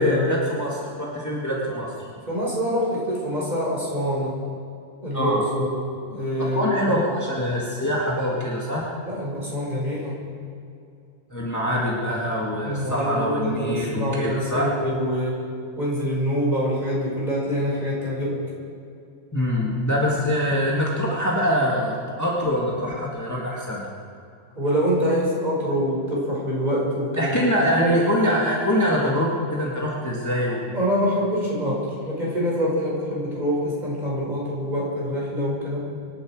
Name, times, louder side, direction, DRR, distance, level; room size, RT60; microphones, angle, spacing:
voice 1, 0.0-2.1 5.1-5.5 6.5-8.9 11.3-14.7 19.3-23.8 27.2-30.6, equal, 15° left, -4 dB, 2.0 m, -24 dB
voice 2, 2.3-4.3 5.0-7.0 9.1-10.2 12.6-15.4 15.8-18.4 24.5-27.5 27.8-27.9 30.7-35.8, equal, 35° right, -5 dB, 5.4 m, -25 dB
25.5 x 11.5 x 4.9 m, 2.5 s
omnidirectional pair, 1.3 m